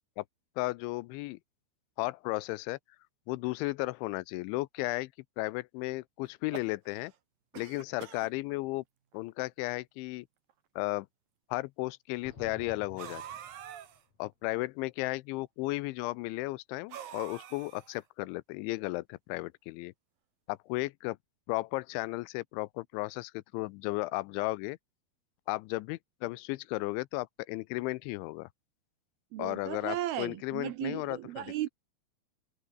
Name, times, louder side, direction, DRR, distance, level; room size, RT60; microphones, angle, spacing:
voice 1, 0.6-1.4 2.0-2.8 3.3-5.1 5.4-7.1 7.5-8.8 9.1-10.3 10.8-11.1 11.5-13.2 14.2-19.9 20.5-21.2 21.5-24.8 25.5-28.5 29.4-31.5, left 21 dB, 80° left, 2.9 m, -34 dB
sound 1, 6.3-7.2 7.5-8.3 9.1-9.2 9.5-9.6 10.5-10.6 13.0-14.0 16.9-18.0, right 10 dB, 55° right, 3.3 m, -45 dB
sound 2, 12.2-14.2, left 5 dB, 35° left, 4.9 m, -50 dB
voice 2, 29.3-31.7, right 13 dB, 75° right, 2.3 m, -36 dB
omnidirectional pair, 5.5 m